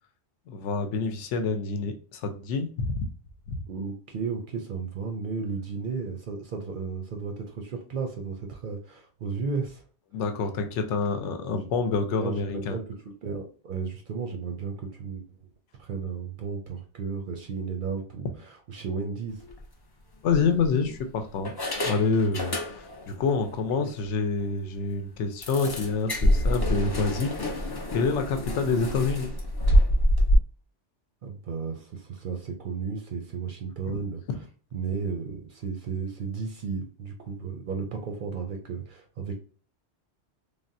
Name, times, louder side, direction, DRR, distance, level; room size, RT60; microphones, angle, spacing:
voice 1, 0.5-3.1 3.5-3.6 10.1-12.8 20.2-21.5 21.8-27.3 27.9-29.3, left 4 dB, 80° left, 6 dB, 0.9 m, -27 dB
voice 2, 3.7-9.8 11.3-11.7 12.2-15.3 15.8-19.4 23.8-23.9 31.2-34.2 34.7-39.4, right 5 dB, 60° right, 3 dB, 0.6 m, -34 dB
sound 1, 19.4-19.6 20.3-21.0 21.4-23.1 23.4-23.6 24.0-24.1 24.4-24.5 25.4-30.4, equal, 35° left, 0.4 m, -26 dB
3.4 x 2.1 x 2.5 m, 0.41 s
omnidirectional pair, 1.2 m